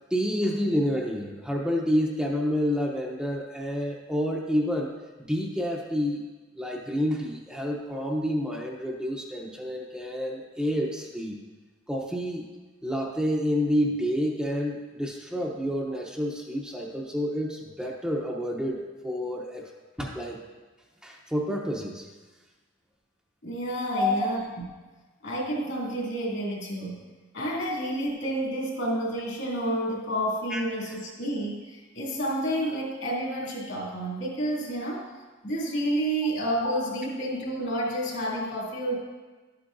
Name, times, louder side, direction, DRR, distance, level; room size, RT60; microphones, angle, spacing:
voice 1, 0.1-4.9 5.2-6.3 6.6-11.4 11.9-12.5 12.8-19.7 20.0-20.4 21.0-22.1 23.9-24.1 30.5-30.6 30.9-31.0, equal, 5° right, -1 dB, 0.7 m, -29 dB
voice 2, 23.4-24.4 25.2-27.0 27.3-35.0 35.4-39.0, right 1 dB, 70° left, -4 dB, 2.7 m, -30 dB
11.5 x 8.4 x 2.6 m, 1.3 s
head